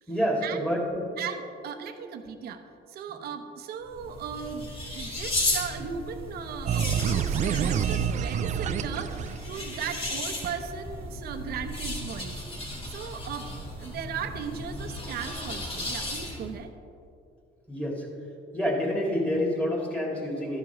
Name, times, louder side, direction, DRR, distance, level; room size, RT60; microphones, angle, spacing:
voice 1, 0.1-1.1 17.7-18.1 18.5-20.6, equal, 5° left, -2 dB, 2.4 m, -28 dB
voice 2, 1.2-2.6 2.9-13.5 13.8-16.7, right 7 dB, 65° right, 8 dB, 0.9 m, -37 dB
sound 1, 3.8-16.6, left 1 dB, 35° left, 2.7 m, -35 dB
sound 2, 6.7-9.9, right 8 dB, 45° right, 0.4 m, -27 dB
12.5 x 10.5 x 3.1 m, 2.6 s
cardioid pair, 110°, 17 cm